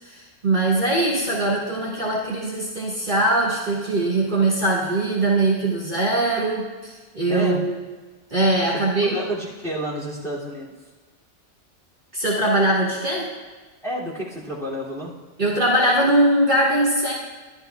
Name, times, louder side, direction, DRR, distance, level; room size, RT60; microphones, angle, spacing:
voice 1, 0.0-7.8 8.3-9.2 12.1-13.3 15.4-17.1, right 1 dB, 40° right, -6 dB, 1.7 m, -21 dB
voice 2, 7.3-7.6 8.6-10.7 13.8-15.1, equal, ahead, -8 dB, 2.4 m, -30 dB
13.0 x 11.5 x 2.3 m, 1.3 s
omnidirectional pair, 1.3 m